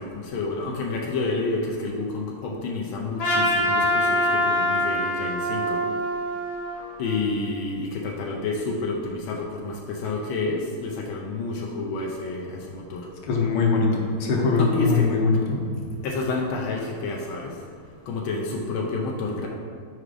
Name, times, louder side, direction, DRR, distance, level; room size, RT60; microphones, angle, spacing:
voice 1, 0.0-5.8 7.0-13.1 14.5-15.1 16.0-17.5 18.1-19.5, left 3 dB, 80° left, -1 dB, 1.5 m, -29 dB
Trumpet, 3.2-7.5, equal, 50° left, 1.3 m, -24 dB
voice 2, 13.2-15.6, left 4 dB, 65° left, 0 dB, 1.5 m, -22 dB
5.0 x 4.8 x 4.8 m, 2.1 s
omnidirectional pair, 2.2 m